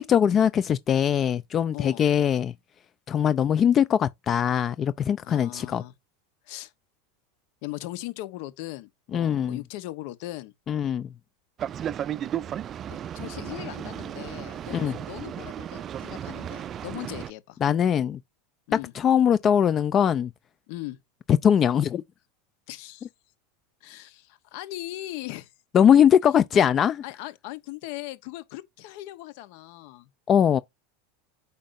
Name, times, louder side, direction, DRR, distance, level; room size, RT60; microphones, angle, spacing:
voice 1, 0.0-2.5 3.1-5.8 9.1-9.6 10.7-11.1 14.7-14.9 17.6-18.2 18.9-20.3 21.3-22.0 25.7-27.0 30.3-30.6, left 8 dB, 35° left, 0.5 m, -21 dB
voice 2, 1.7-2.0 5.2-5.9 6.5-6.7 7.6-10.5 12.9-17.6 18.7-18.9 20.7-21.0 22.7-23.1 23.8-25.5 27.0-30.1, left 17 dB, 60° left, 1.0 m, -39 dB
Boat Water vehicle, 11.6-17.3, right 10 dB, 35° right, 0.4 m, -34 dB
8.4 x 5.3 x 2.6 m
hypercardioid pair, 100°, 0 cm